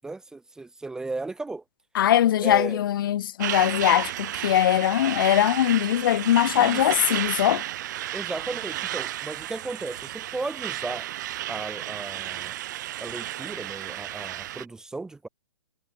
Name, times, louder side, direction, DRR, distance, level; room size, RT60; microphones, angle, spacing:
voice 1, 0.0-1.6 2.4-2.8 6.6-6.8 8.1-11.1 11.5-12.5 13.0-15.3, right 3 dB, 5° right, 1.4 m, -35 dB
voice 2, 1.9-7.6, left 11 dB, 45° left, 0.4 m, -21 dB
Truck, 3.4-14.6, right 14 dB, 40° right, 0.9 m, -33 dB
hypercardioid pair, 165°, 15 cm